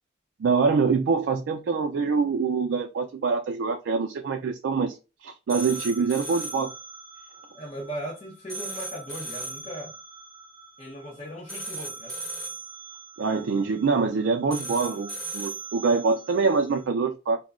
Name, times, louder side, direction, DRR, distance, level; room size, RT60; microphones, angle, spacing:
voice 1, 0.4-4.9 5.2-6.7 13.2-17.4, right 4 dB, 90° right, 0.4 m, -25 dB
sound 1, 5.5-16.8, right 2 dB, 5° left, 1.1 m, -39 dB
voice 2, 7.5-9.9 10.8-12.2, equal, 35° left, 0.7 m, -38 dB
2.2 x 2.1 x 3.5 m
head